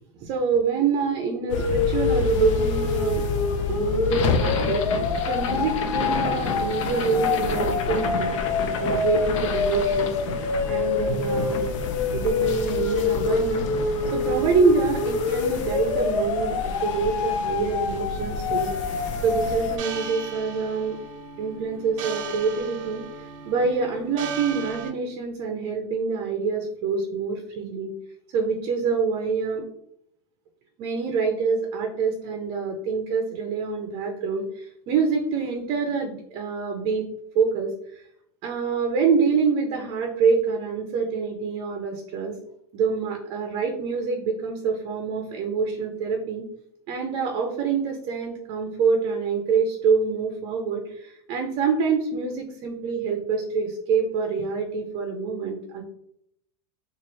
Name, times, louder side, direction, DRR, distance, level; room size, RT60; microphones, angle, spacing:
voice 1, 0.2-3.2 3.7-4.9 5.3-8.4 8.8-10.1 10.6-11.7 12.1-18.7 19.2-21.0 21.4-23.0 23.4-27.9 28.3-29.7 30.8-37.0 37.3-38.0 38.4-42.4 42.7-46.5 46.9-55.8, right 5 dB, 35° right, 3 dB, 0.5 m, -26 dB
sound 1, 1.5-19.8, left 4 dB, 70° left, 0.6 m, -25 dB
sound 2, 18.6-24.9, right 6 dB, 75° right, 0.6 m, -38 dB
4.0 x 2.4 x 3.0 m, 0.71 s
supercardioid pair, 170°, 17 cm